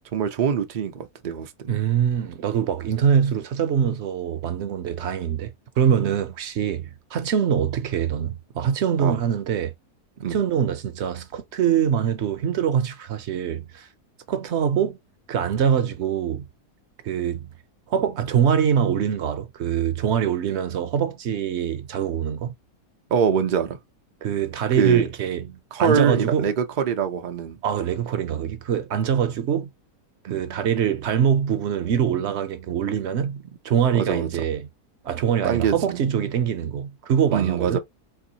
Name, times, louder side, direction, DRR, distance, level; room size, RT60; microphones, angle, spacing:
voice 1, 0.1-1.7 9.0-9.2 10.2-10.4 23.1-23.8 24.8-25.0 25.7-27.6 30.3-30.4 33.9-34.3 35.4-36.0 37.3-37.8, right 7 dB, 80° right, 0.4 m, -23 dB
voice 2, 1.7-9.7 10.3-13.9 14.3-15.0 15.3-16.5 17.0-17.5 17.9-22.5 24.2-26.5 27.6-29.7 30.2-34.7 35.0-37.8, right 8 dB, 60° right, 0.7 m, -24 dB
4.5 x 2.5 x 2.7 m
omnidirectional pair, 1.7 m